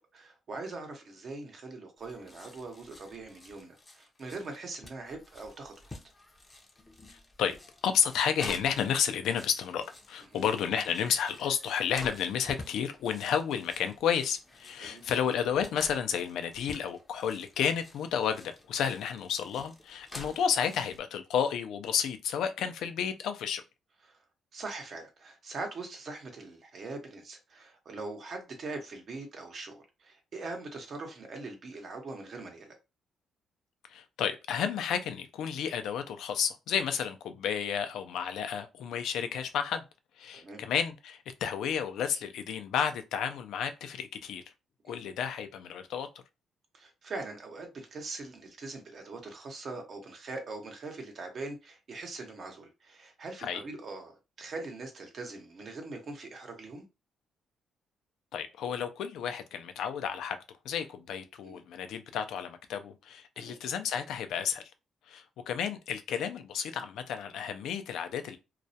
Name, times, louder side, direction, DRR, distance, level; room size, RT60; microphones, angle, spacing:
voice 1, 0.1-5.9 10.3-10.5 14.8-15.0 24.1-24.2 24.5-32.8 40.3-40.6 44.9-45.0 46.7-56.8 61.4-61.6 63.4-63.5, right 3 dB, 50° right, 0.8 m, -42 dB
sound 1, 2.0-21.0, left 2 dB, 25° left, 0.5 m, -50 dB
voice 2, 7.1-7.6 7.8-23.6 33.9-39.8 40.2-44.4 44.8-46.1 53.4-53.6 58.3-60.4 60.6-64.6 65.1-68.4, left 8 dB, 80° left, 0.3 m, -31 dB
2.3 x 2.0 x 2.7 m
cardioid pair, 90°, 0 cm